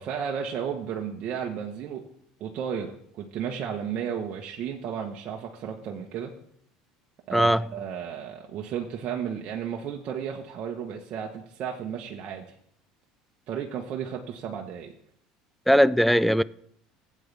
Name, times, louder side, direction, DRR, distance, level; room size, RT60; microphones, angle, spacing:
voice 1, 0.0-2.0 2.4-6.3 7.3-12.4 13.5-14.9, right 8 dB, 50° right, 1.2 m, -33 dB
voice 2, 7.3-7.6 15.7-16.4, equal, ahead, 0.4 m, -19 dB
15.5 x 8.6 x 3.4 m
supercardioid pair, 100°, 3 cm